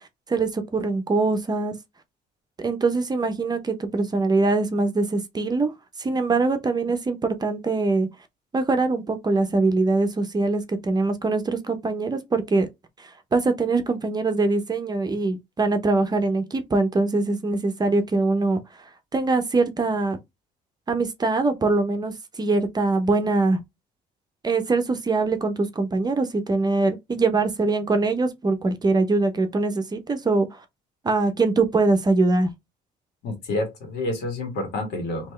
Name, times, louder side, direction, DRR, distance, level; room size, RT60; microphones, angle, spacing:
voice 1, 0.3-1.7 2.6-5.7 6.0-8.1 8.5-12.7 13.0-18.6 19.1-20.2 20.9-23.6 24.4-30.6 31.0-32.5, right 3 dB, 25° right, 0.7 m, -23 dB
voice 2, 33.2-35.3, left 2 dB, 85° left, 1.6 m, -29 dB
3.5 x 2.9 x 3.2 m
cardioid pair, 110°, 17 cm